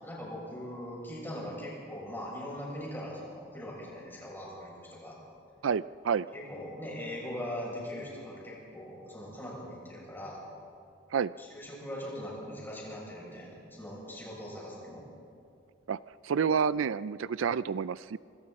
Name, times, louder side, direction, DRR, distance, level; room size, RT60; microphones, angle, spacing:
voice 1, 0.0-5.1 6.3-10.4 11.4-15.0, equal, 10° left, -5 dB, 7.4 m, -41 dB
voice 2, 5.6-6.3 11.1-11.3 15.9-16.0 16.2-18.2, right 6 dB, 80° right, 16 dB, 0.4 m, -29 dB
26.5 x 26.0 x 4.3 m, 2.4 s
head